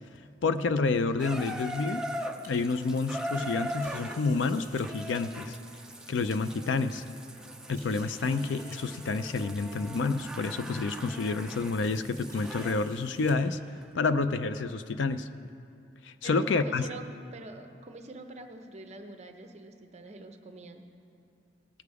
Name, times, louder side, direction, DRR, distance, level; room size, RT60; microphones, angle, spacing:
voice 1, 0.4-2.0 2.5-5.6 6.1-7.0 7.7-13.6 13.9-15.3 16.0-16.8, left 4 dB, 70° left, 12 dB, 0.4 m, -29 dB
Water tap faucet / Bathtub (filling or washing), 1.2-12.8 13.8-13.9, equal, 5° right, 0.4 m, -40 dB
sound 1, 1.8-2.5 3.7-4.9 5.6-6.4 7.0-7.1 7.7-8.8 9.7-9.8 10.2-10.6 10.9-11.0 12.3-13.3, right 1 dB, 15° left, 2.0 m, -54 dB
voice 2, 16.2-20.8, right 2 dB, 35° right, 5 dB, 0.7 m, -44 dB
18.0 x 6.9 x 4.8 m, 2.6 s
head